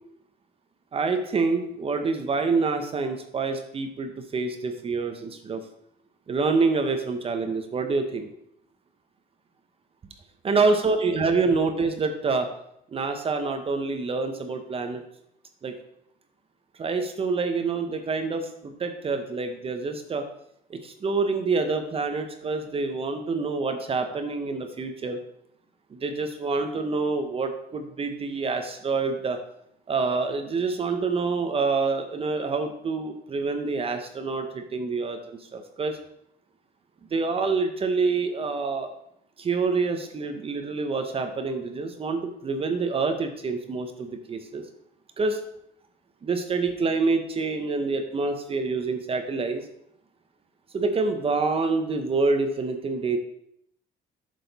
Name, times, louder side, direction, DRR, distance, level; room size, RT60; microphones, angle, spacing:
voice 1, 0.9-5.6 6.3-8.3 10.4-12.5 12.9-15.0 15.6-15.7 16.8-20.2 20.7-25.2 25.9-29.4 29.9-35.9 37.1-38.9 39.4-44.6 45.2-45.4 46.2-49.6 50.7-53.2, right 4 dB, 35° right, 6 dB, 0.9 m, -27 dB
7.8 x 6.6 x 4.1 m, 0.74 s
cardioid pair, 110°, 17 cm